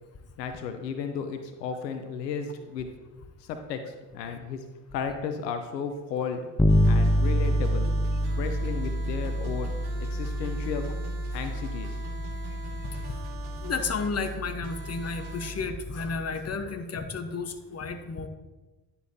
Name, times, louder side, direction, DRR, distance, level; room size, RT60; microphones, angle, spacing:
voice 1, 0.4-2.9 3.4-4.6 4.9-6.5 6.9-7.9 8.4-9.7 10.0-10.9 11.3-12.0, left 6 dB, 85° left, 7 dB, 0.7 m, -34 dB
Bass guitar, 6.6-16.3, equal, 10° left, 0.8 m, -28 dB
sound 1, 6.7-15.5, right 2 dB, 50° right, 2.1 m, -44 dB
voice 2, 13.6-18.3, left 4 dB, 30° left, 7 dB, 1.1 m, -32 dB
10.0 x 6.9 x 2.8 m, 1.1 s
hypercardioid pair, 50°, 48 cm